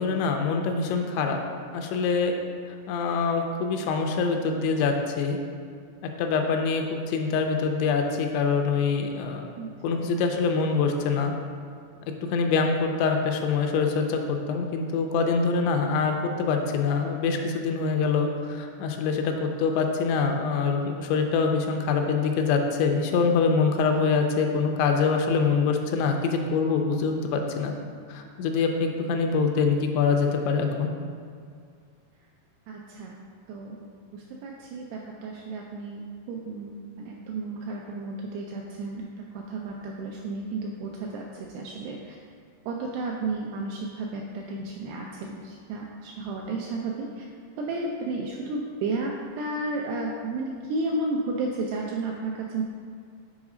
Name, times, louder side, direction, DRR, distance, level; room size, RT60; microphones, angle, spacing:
voice 1, 0.0-1.4 1.7-2.4 2.9-5.4 6.2-9.5 9.8-11.3 12.3-27.7 28.1-30.9, left 5 dB, 85° left, 3 dB, 2.9 m, -25 dB
voice 2, 9.6-10.0 32.7-33.2 33.5-42.2 42.7-47.2 47.6-52.6, right 2 dB, 85° right, -1 dB, 2.3 m, -33 dB
7.2 x 4.0 x 4.9 m, 2.2 s
omnidirectional pair, 5.2 m